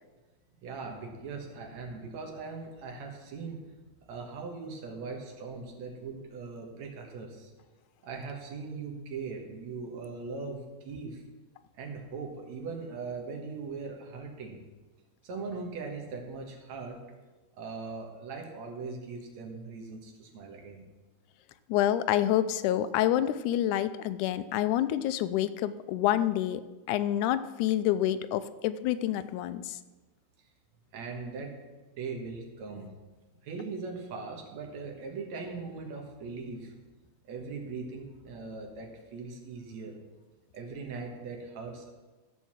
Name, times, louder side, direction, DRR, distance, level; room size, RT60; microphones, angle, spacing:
voice 1, 0.6-3.6 4.1-7.5 8.0-11.2 11.8-14.6 15.2-17.0 17.6-20.9 30.9-31.6 32.0-32.9 33.4-36.7 37.3-40.0 40.5-41.9, right 4 dB, 70° right, 1 dB, 2.6 m, -40 dB
voice 2, 21.7-26.6 26.9-29.8, left 12 dB, 85° left, 13 dB, 2.0 m, -27 dB
14.0 x 4.7 x 7.3 m, 1.2 s
omnidirectional pair, 3.4 m